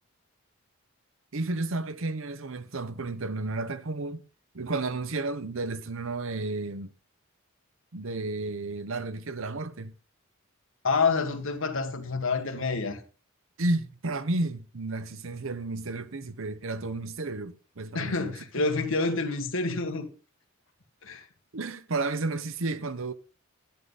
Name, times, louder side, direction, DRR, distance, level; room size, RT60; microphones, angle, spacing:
voice 1, 1.3-4.2 4.5-6.9 7.9-9.9 13.6-18.6 21.5-23.1, right 2 dB, 65° right, 0.9 m, -32 dB
voice 2, 10.8-13.0 17.9-20.1 21.0-21.2, left 4 dB, 65° left, 1.8 m, -28 dB
11.0 x 10.5 x 4.1 m
head